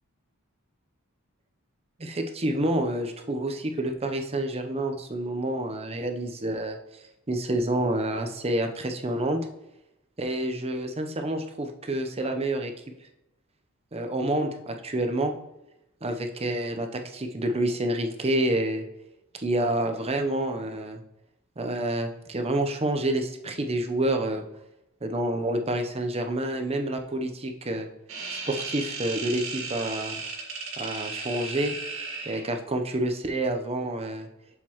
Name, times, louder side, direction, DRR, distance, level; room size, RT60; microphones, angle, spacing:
voice 1, 2.0-6.8 7.3-9.4 10.2-12.7 13.9-15.3 16.0-18.8 19.3-21.0 21.6-24.4 25.0-27.9 28.3-30.2 30.8-31.7 32.3-34.3, right 1 dB, 30° right, 5 dB, 0.8 m, -28 dB
sound 1, 28.1-32.5, right 4 dB, 65° right, 2.1 m, -35 dB
7.4 x 6.7 x 3.0 m, 0.89 s
head